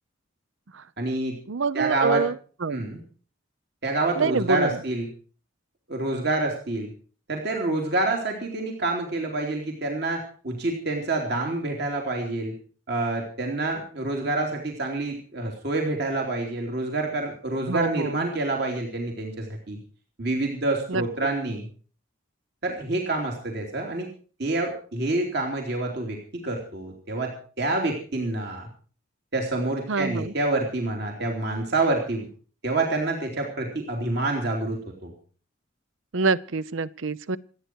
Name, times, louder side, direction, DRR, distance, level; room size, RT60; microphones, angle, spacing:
voice 1, 1.0-1.4 1.7-2.3 2.7-3.0 3.8-5.1 5.9-6.9 7.3-12.5 12.9-19.8 20.2-21.7 22.6-24.1 24.4-27.3 27.6-28.7 29.3-32.3 32.6-35.1, right 2 dB, 55° right, 1 dB, 3.2 m, -27 dB
voice 2, 1.5-2.8 4.2-4.8 17.7-18.3 20.9-21.0 29.9-30.3 36.1-37.4, right 4 dB, 75° right, 18 dB, 0.7 m, -26 dB
27.5 x 9.4 x 4.6 m, 0.40 s
head